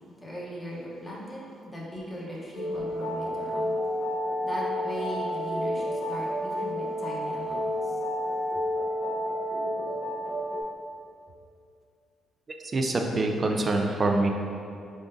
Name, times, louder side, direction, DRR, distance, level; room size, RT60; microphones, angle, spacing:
voice 1, 0.2-3.7 4.4-8.0, equal, 15° left, -5 dB, 0.9 m, -38 dB
sound 1, 2.5-10.6, equal, 65° left, 0.8 m, -30 dB
voice 2, 12.7-14.3, right 2 dB, 30° right, 3 dB, 0.4 m, -25 dB
4.7 x 3.7 x 2.6 m, 2.5 s
cardioid pair, 125°, 0 cm